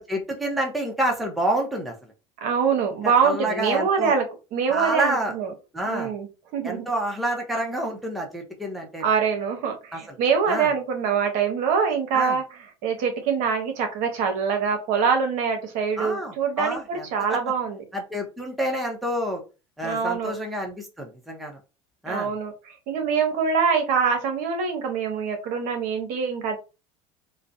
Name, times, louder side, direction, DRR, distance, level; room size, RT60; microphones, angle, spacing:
voice 1, 0.0-1.9 3.2-4.1 4.7-5.3 5.7-6.1 6.6-9.0 9.9-10.0 10.5-10.7 12.1-12.4 16.0-17.4 17.9-19.4 19.8-21.6 22.0-22.3, right 1 dB, ahead, 1 dB, 0.5 m, -28 dB
voice 2, 2.4-4.2 4.5-5.5 5.9-6.3 6.5-6.9 9.0-17.8 19.8-20.3 22.1-26.6, right 6 dB, 60° right, 5 dB, 0.8 m, -24 dB
2.4 x 2.0 x 2.5 m, 0.30 s
supercardioid pair, 120°, 15 cm